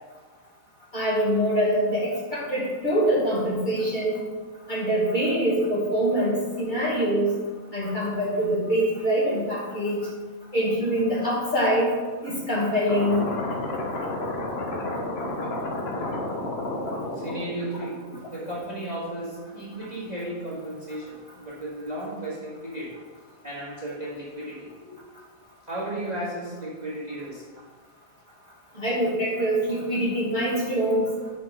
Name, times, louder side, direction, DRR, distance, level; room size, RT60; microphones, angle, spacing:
voice 1, 0.9-4.2 4.7-7.3 7.7-10.1 10.5-11.9 12.2-13.3 28.7-31.1, equal, 35° left, -7 dB, 2.2 m, -24 dB
sound 1, 12.9-18.7, left 2 dB, 50° left, 1.2 m, -31 dB
voice 2, 17.2-18.0 18.3-22.9 23.4-24.9 25.7-27.4, right 1 dB, 30° right, -8 dB, 1.9 m, -34 dB
6.8 x 5.2 x 5.4 m, 1.4 s
omnidirectional pair, 1.5 m